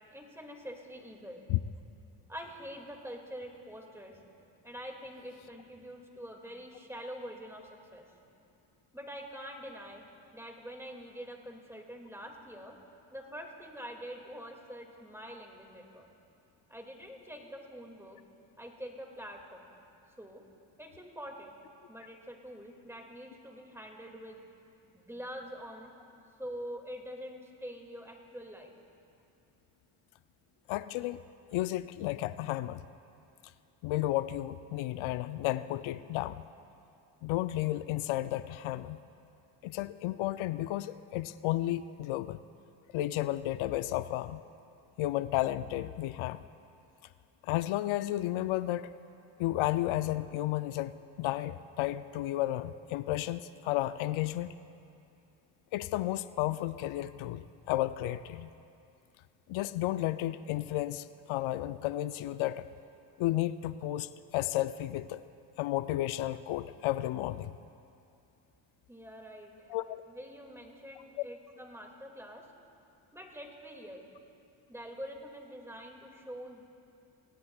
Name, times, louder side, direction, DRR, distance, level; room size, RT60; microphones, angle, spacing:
voice 1, 0.1-1.4 2.3-4.2 4.6-8.1 8.9-10.0 10.3-12.8 13.1-16.1 16.7-18.2 18.6-19.7 20.2-20.4 20.8-21.5 21.9-24.4 24.9-25.9 26.4-28.7 68.9-69.7 70.1-72.4 73.1-74.1 74.7-76.7, equal, 5° right, 1 dB, 2.1 m, -45 dB
voice 2, 30.7-31.2 31.5-32.8 33.8-36.4 37.2-39.0 39.6-42.4 42.9-44.4 45.0-46.4 47.4-48.9 49.4-54.5 55.7-58.5 59.5-62.7 63.2-65.2 65.6-67.5 69.7-70.0, left 15 dB, 80° left, 13 dB, 0.5 m, -32 dB
27.0 x 17.0 x 2.3 m, 2.6 s
cardioid pair, 90°, 48 cm